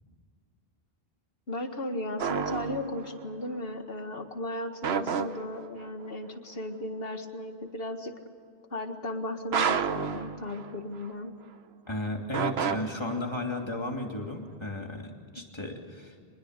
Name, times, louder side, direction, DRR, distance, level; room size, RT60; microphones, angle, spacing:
voice 1, 1.5-8.1 8.7-11.3, left 1 dB, 65° left, 6 dB, 2.0 m, -35 dB
sound 1, 2.2-3.2 4.8-5.9 9.5-11.1 12.3-13.6, right 6 dB, 85° right, 1.2 m, -30 dB
voice 2, 11.9-16.1, left 1 dB, 25° left, 1 dB, 2.9 m, -34 dB
24.5 x 21.0 x 6.7 m, 2.3 s
omnidirectional pair, 1.0 m